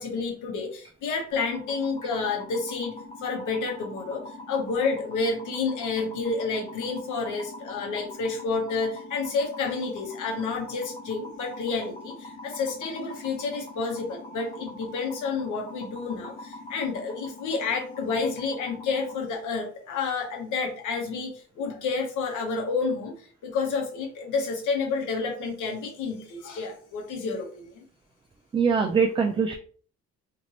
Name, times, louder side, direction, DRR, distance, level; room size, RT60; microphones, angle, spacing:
voice 1, 0.0-4.2 4.5-27.8, left 4 dB, 80° left, 1 dB, 1.0 m, -30 dB
sound 1, 1.3-19.1, left 2 dB, 10° left, 1.0 m, -43 dB
voice 2, 28.5-29.5, right 5 dB, 20° right, 3 dB, 0.3 m, -22 dB
2.9 x 2.5 x 2.9 m, 0.44 s
cardioid pair, 90°, 30 cm